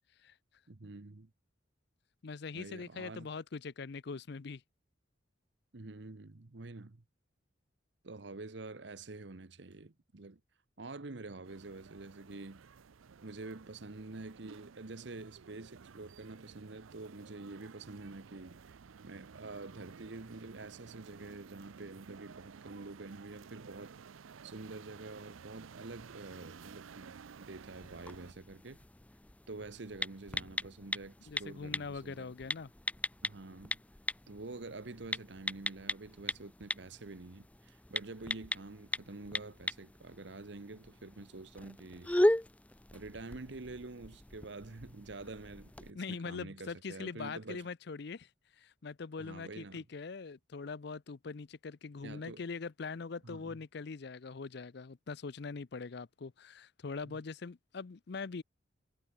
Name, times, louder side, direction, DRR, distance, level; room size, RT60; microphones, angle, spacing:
voice 1, 0.7-1.3 2.5-3.3 5.7-7.0 8.0-10.4 10.8-12.6 13.2-18.8 19.0-28.8 29.5-32.3 33.2-33.8 34.3-42.1 42.9-47.7 49.2-49.8 52.0-52.4 53.2-53.6 57.0-57.2, right 3 dB, 60° right, 1.0 m, -47 dB
voice 2, 2.2-4.6 31.3-32.7 45.9-48.3 48.6-58.4, left 4 dB, 55° left, 0.5 m, -42 dB
sound 1, 11.4-28.3, right 6 dB, 85° right, 0.6 m, -54 dB
sound 2, 27.6-45.9, left 1 dB, 5° left, 0.4 m, -38 dB
head